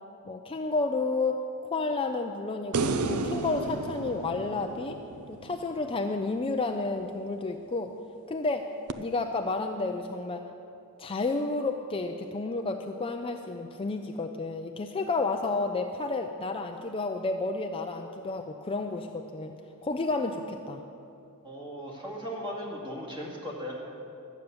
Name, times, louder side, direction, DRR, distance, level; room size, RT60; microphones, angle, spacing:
voice 1, 0.2-1.4 1.7-5.0 5.3-7.9 8.3-10.5 11.0-19.5 19.8-20.8, left 3 dB, 25° left, 5 dB, 0.4 m, -31 dB
sound 1, 2.7-6.1 8.9-9.0, right 3 dB, 80° right, 0.6 m, -32 dB
voice 2, 21.4-23.8, equal, 20° right, -4 dB, 2.4 m, -37 dB
12.5 x 9.2 x 6.8 m, 2.7 s
head